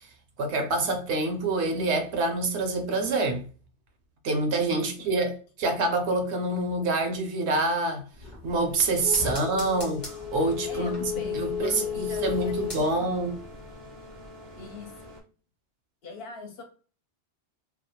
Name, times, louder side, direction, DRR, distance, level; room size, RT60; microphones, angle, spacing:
voice 1, 0.4-3.4 4.2-8.0 8.4-13.4, right 2 dB, 75° right, 0.9 m, -26 dB
voice 2, 4.7-5.1 9.2-9.3 10.7-12.9 14.6-15.1 16.0-16.6, left 4 dB, 65° left, 0.8 m, -42 dB
sound 1, 8.1-13.3 13.6-13.7, left 7 dB, 25° left, 0.6 m, -33 dB
sound 2, 10.0-15.2, left 1 dB, 45° right, 0.5 m, -46 dB
2.4 x 2.0 x 2.7 m
omnidirectional pair, 1.2 m